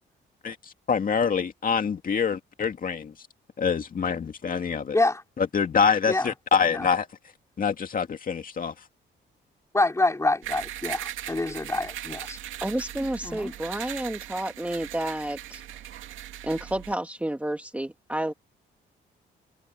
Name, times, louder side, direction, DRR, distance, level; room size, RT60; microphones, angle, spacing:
voice 1, 0.9-3.1 3.6-5.0 5.4-7.1 7.6-8.7, left 6 dB, 45° left, 2.3 m, -25 dB
voice 2, 9.7-12.4 13.2-13.5, left 2 dB, 15° left, 3.9 m, -26 dB
sound 1, 10.4-16.9, right 12 dB, 85° right, 2.4 m, -39 dB
voice 3, 12.6-15.6 16.4-18.3, right 1 dB, 5° right, 1.6 m, -30 dB
cardioid pair, 90°, 20 cm